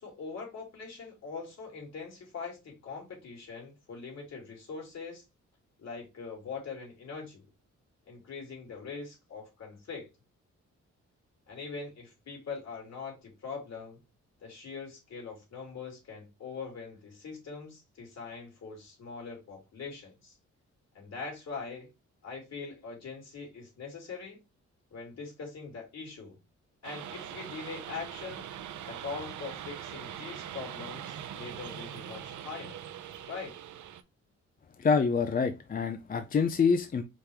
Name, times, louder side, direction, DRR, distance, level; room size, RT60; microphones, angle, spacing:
voice 1, 0.0-5.2 5.8-7.4 8.1-10.1 11.5-14.0 14.4-20.3 20.9-21.9 22.2-24.4 24.9-26.4 26.8-28.4 28.8-32.8 33.3-33.5, left 5 dB, 60° left, 3.0 m, -42 dB
sound 1, 26.8-34.0, right 10 dB, 80° right, 0.6 m, -42 dB
voice 2, 34.8-37.0, left 5 dB, 30° left, 0.4 m, -26 dB
5.0 x 2.9 x 3.4 m
cardioid pair, 115°, 29 cm